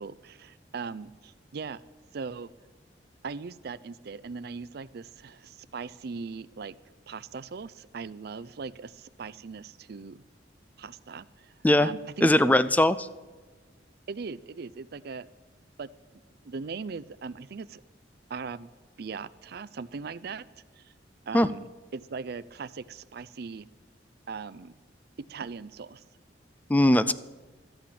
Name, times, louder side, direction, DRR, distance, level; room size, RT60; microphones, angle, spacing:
voice 1, 0.0-1.8 2.1-2.5 3.2-6.8 7.1-10.2 10.8-11.5 11.8-12.6 14.1-15.3 15.8-15.9 16.4-17.8 18.3-18.7 19.0-20.4 21.3-23.7 24.3-24.7 25.3-26.0, right 5 dB, 60° right, 18 dB, 0.5 m, -39 dB
voice 2, 12.2-13.0 21.3-21.5 26.7-27.1, left 1 dB, 10° left, 15 dB, 0.4 m, -20 dB
13.0 x 8.8 x 8.6 m, 1.3 s
head